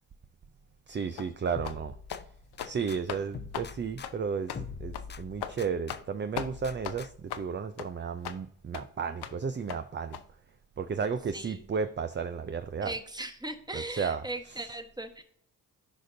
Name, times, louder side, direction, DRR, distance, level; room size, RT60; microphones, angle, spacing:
voice 1, 0.9-2.0 2.6-10.2 10.8-12.9 13.7-14.6, right 6 dB, 25° right, 0.5 m, -33 dB
sound 1, 1.2-1.3 1.6-1.8 2.1-2.2 2.5-2.8 3.1-3.2 3.5-3.7 4.0-4.2 4.5-4.6 4.9-5.1 5.4-5.6 5.9-6.1 6.4-6.5 6.8-7.0 7.3-7.5 7.8-7.9 8.2-8.4 8.7-8.8 9.2-9.4 9.7-9.8 10.1-10.2, left 9 dB, 60° left, 0.7 m, -38 dB
sound 2, 1.6-3.0 3.3-6.0 6.4-7.4, left 6 dB, 25° left, 0.4 m, -44 dB
voice 2, 11.3-11.7 12.8-15.2, right 2 dB, 10° right, 1.3 m, -38 dB
14.0 x 5.1 x 2.7 m
supercardioid pair, 45°, 43 cm